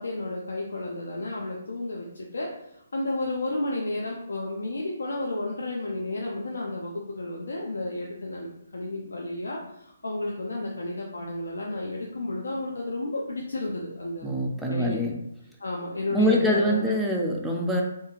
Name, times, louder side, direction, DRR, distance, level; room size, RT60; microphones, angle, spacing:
voice 1, 0.0-14.3 14.7-15.0 15.6-16.8, left 2 dB, 80° left, -2 dB, 0.4 m, -32 dB
voice 2, 14.2-15.1 16.1-17.8, equal, ahead, -2 dB, 0.4 m, -24 dB
2.7 x 2.5 x 2.4 m, 0.78 s
hypercardioid pair, 150°, 0 cm